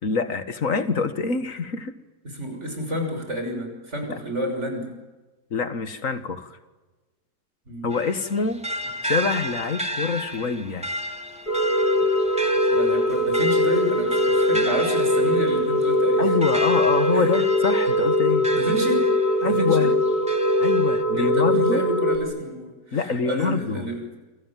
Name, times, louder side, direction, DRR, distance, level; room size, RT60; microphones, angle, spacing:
voice 1, 0.0-2.0 4.0-4.2 5.5-6.6 7.8-8.6 9.0-10.9 14.5-14.6 16.2-18.5 19.4-19.9 20.6-21.8 22.9-23.9, left 5 dB, 55° left, 10 dB, 2.1 m, -25 dB
voice 2, 2.2-5.0 7.7-7.9 12.6-16.3 17.1-17.3 18.5-19.1 19.4-19.9 21.1-23.0 23.3-24.0, equal, 45° right, 4 dB, 6.6 m, -30 dB
sound 1, 7.9-19.6 20.1-21.0, equal, 5° right, 2.1 m, -33 dB
sound 2, 11.5-22.2, equal, 70° left, 3.9 m, -21 dB
29.0 x 25.5 x 7.6 m, 1.2 s
omnidirectional pair, 1.7 m